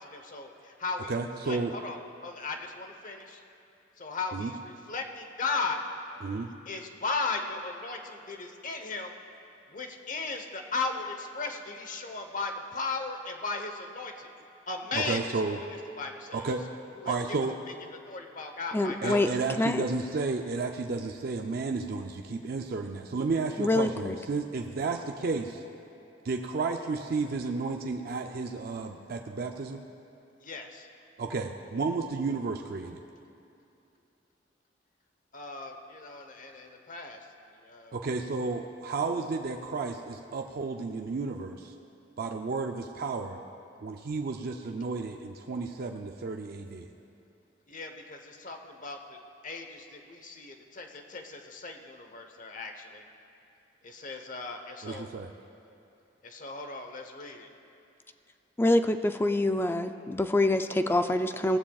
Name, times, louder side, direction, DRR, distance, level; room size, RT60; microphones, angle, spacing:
voice 1, 0.0-1.1 1.4-3.4 4.0-5.8 6.7-9.2 9.7-14.3 14.7-15.6 16.0-16.5 17.0-17.4 18.1-19.3 30.4-30.9 35.3-37.2 37.6-38.0 47.7-49.2 49.4-53.0 53.8-55.1 56.2-57.5, left 3 dB, 45° left, 4 dB, 1.0 m, -36 dB
voice 2, 1.1-1.8 4.3-4.5 6.2-6.5 14.9-15.6 16.3-16.6 17.1-17.6 19.0-25.6 26.2-29.8 31.2-33.0 37.9-41.7 42.2-43.4 43.8-46.9 54.8-55.3, right 4 dB, 55° right, 3 dB, 0.4 m, -32 dB
voice 3, 18.7-19.3 19.6-19.8 23.6-24.1 58.6-61.6, left 1 dB, 10° left, 8 dB, 0.4 m, -25 dB
18.0 x 14.5 x 2.4 m, 2.7 s
head